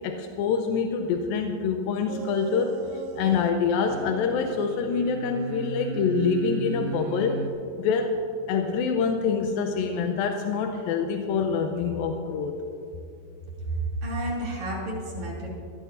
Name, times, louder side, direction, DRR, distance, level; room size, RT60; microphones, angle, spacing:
voice 1, 0.0-2.8 3.2-7.4 7.8-8.1 8.5-12.5, left 5 dB, 85° left, 4 dB, 2.5 m, -26 dB
sound 1, 2.1-3.5 3.8-7.5, right 8 dB, 80° right, 2.4 m, -36 dB
voice 2, 13.6-15.5, right 2 dB, 55° right, -5 dB, 4.1 m, -30 dB
21.5 x 14.5 x 2.6 m, 2.7 s
omnidirectional pair, 4.1 m